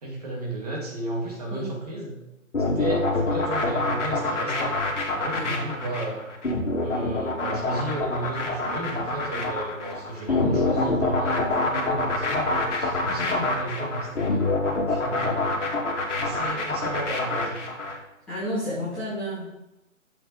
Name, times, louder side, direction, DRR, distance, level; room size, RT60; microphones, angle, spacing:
voice 1, 0.0-2.2 2.6-4.8 5.1-6.2 6.8-14.5 14.8-15.6 16.2-17.6, right 1 dB, 30° right, -1 dB, 2.1 m, -33 dB
sound 1, 2.5-18.0, left 2 dB, 60° left, 2.6 m, -26 dB
voice 2, 13.1-13.4 18.3-19.5, equal, 5° left, -15 dB, 1.4 m, -31 dB
11.5 x 7.2 x 4.1 m, 0.93 s
hypercardioid pair, 170°, 41 cm